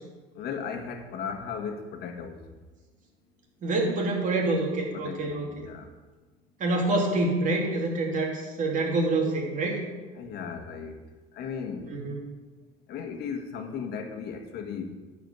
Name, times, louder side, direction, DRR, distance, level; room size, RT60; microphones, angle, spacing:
voice 1, 0.3-2.5 4.9-5.9 8.1-8.2 10.1-11.0 11.3-12.0 12.9-14.9, left 6 dB, 65° left, 5 dB, 1.6 m, -36 dB
voice 2, 3.6-5.4 6.6-9.8 11.9-12.2, right 2 dB, 45° right, -1 dB, 2.9 m, -26 dB
10.5 x 5.0 x 8.1 m, 1.3 s
cardioid pair, 115°, 18 cm